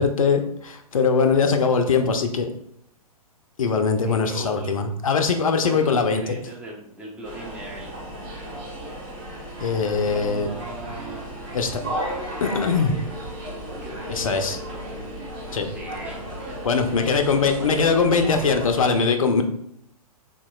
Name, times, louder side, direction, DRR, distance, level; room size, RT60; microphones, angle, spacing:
voice 1, 0.0-2.5 3.6-6.2 9.6-10.5 11.5-11.8 12.4-12.9 14.1-14.6 15.5-15.7 16.6-19.4, left 5 dB, 60° left, 7 dB, 0.5 m, -21 dB
voice 2, 4.0-4.8 5.6-8.0 9.9-11.3 13.7-14.8 15.6-17.8, right 2 dB, 5° right, -3 dB, 0.5 m, -40 dB
sound 1, 7.2-18.9, right 1 dB, 30° right, 1.4 m, -34 dB
3.8 x 2.9 x 2.3 m, 0.73 s
figure-of-eight pair, 115°, 19 cm